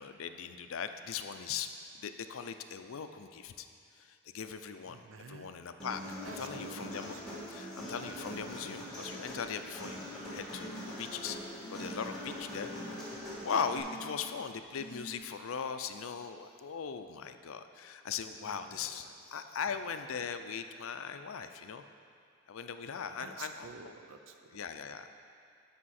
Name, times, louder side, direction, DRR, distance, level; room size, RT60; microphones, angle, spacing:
voice 1, 0.0-1.7 1.9-3.7 4.0-5.0 5.3-7.2 7.5-13.2 13.4-21.8 22.5-23.9 24.5-25.1, left 6 dB, 75° left, 8 dB, 0.5 m, -39 dB
voice 2, 4.9-5.5 6.2-6.4 6.6-7.4 18.4-18.9 23.2-24.6, right 4 dB, 65° right, 6 dB, 0.6 m, -50 dB
Human voice, 5.8-13.8, equal, 5° left, 2.4 m, -43 dB
sound 1, 10.6-11.3 11.6-12.1 12.7-13.2 13.7-14.2 14.8-15.2, right 1 dB, 45° left, 0.8 m, -48 dB
12.0 x 5.7 x 4.2 m, 2.3 s
head